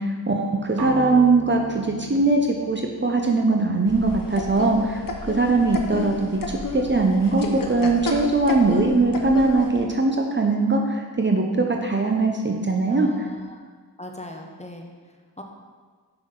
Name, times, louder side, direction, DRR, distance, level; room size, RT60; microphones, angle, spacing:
voice 1, 0.0-13.1, right 3 dB, 30° right, 2 dB, 0.8 m, -21 dB
sound 1, 0.8-4.7, right 2 dB, 65° right, 1.1 m, -39 dB
sound 2, 3.9-9.8, left 3 dB, 55° left, 0.9 m, -32 dB
voice 2, 12.9-13.6 14.0-14.9 15.4-15.5, left 1 dB, 15° left, 2 dB, 1.0 m, -39 dB
5.9 x 5.9 x 3.9 m, 1.5 s
cardioid pair, 40°, 40 cm